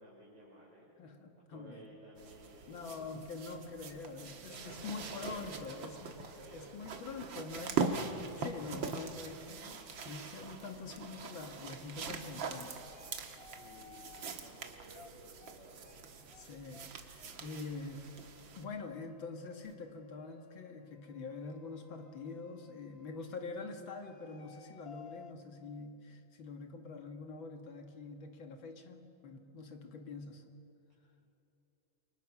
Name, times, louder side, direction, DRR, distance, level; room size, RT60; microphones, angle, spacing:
voice 1, 0.0-0.9 1.3-3.1 4.4-7.2 13.3-16.1 17.7-17.8, right 1 dB, 65° right, -5 dB, 5.4 m, -55 dB
voice 2, 1.0-1.9 2.7-6.1 6.5-13.1 16.3-18.1 18.5-30.6, left 4 dB, 90° left, 4 dB, 2.7 m, -45 dB
sound 1, 2.2-18.6 19.6-19.7, right 5 dB, 80° right, 2.3 m, -42 dB
sound 2, 12.9-14.4 14.9-15.1 15.4-15.6 15.8-16.0 16.3-16.4 16.7-16.9 17.2-17.3 17.6-23.4 24.0-25.3, left 6 dB, 40° left, 0.9 m, -58 dB
29.0 x 24.5 x 6.1 m, 2.9 s
omnidirectional pair, 2.1 m